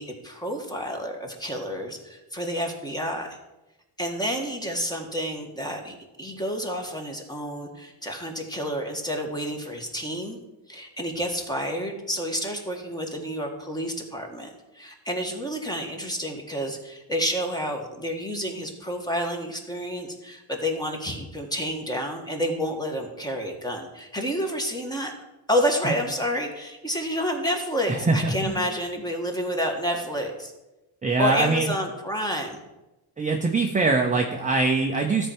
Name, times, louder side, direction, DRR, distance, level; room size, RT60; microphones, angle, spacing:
voice 1, 0.0-3.4 4.0-10.4 10.7-25.1 25.5-30.5 31.2-32.6, equal, 10° left, 2 dB, 1.6 m, -29 dB
voice 2, 27.9-28.5 31.0-31.7 33.2-35.3, right 3 dB, 15° right, 3 dB, 0.7 m, -23 dB
13.0 x 4.5 x 7.2 m, 1.0 s
cardioid pair, 135°, 48 cm